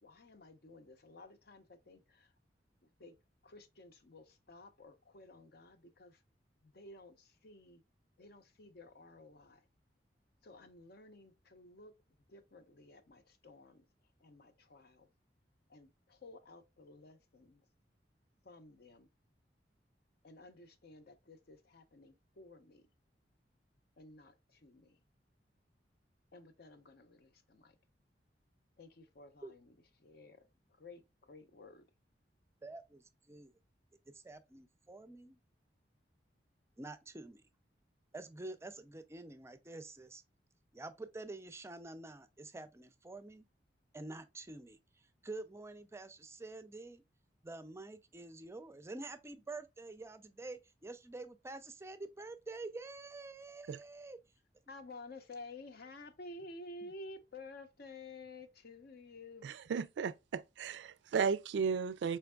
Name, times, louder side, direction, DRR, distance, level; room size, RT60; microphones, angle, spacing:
voice 1, 0.0-2.3 2.8-3.2 3.4-6.2 6.6-7.8 8.2-9.7 10.4-11.9 12.3-13.9 14.2-15.1 15.7-17.6 18.4-19.1 20.2-22.9 24.0-25.0 26.3-27.8 28.8-31.8 54.7-59.5, left 2 dB, 60° left, 0.7 m, -53 dB
voice 2, 32.6-33.5 34.1-35.4 36.8-37.4 38.1-40.2 40.7-43.5 43.9-47.0 47.4-54.2 56.8-56.9, right 2 dB, 15° right, 0.4 m, -48 dB
voice 3, 59.4-62.2, right 6 dB, 80° right, 0.3 m, -35 dB
4.5 x 3.4 x 2.2 m
head